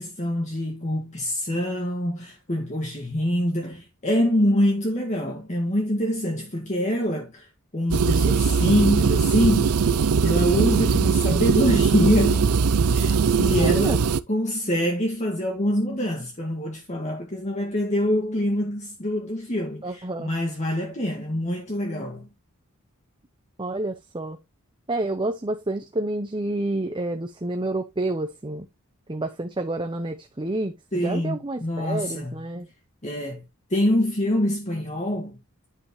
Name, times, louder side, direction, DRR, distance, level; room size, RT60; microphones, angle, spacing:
voice 1, 0.0-7.5 7.7-12.5 12.9-22.3 30.9-32.4 33.0-33.4 33.7-35.4, equal, 30° left, 1.7 m, -25 dB
sound 1, 7.9-14.2, right 5 dB, 85° right, 0.5 m, -20 dB
voice 2, 13.5-14.0 19.8-20.3 23.6-24.4 24.9-28.7 29.1-30.7 31.0-32.7, right 2 dB, 20° right, 0.8 m, -29 dB
9.8 x 5.9 x 3.1 m
head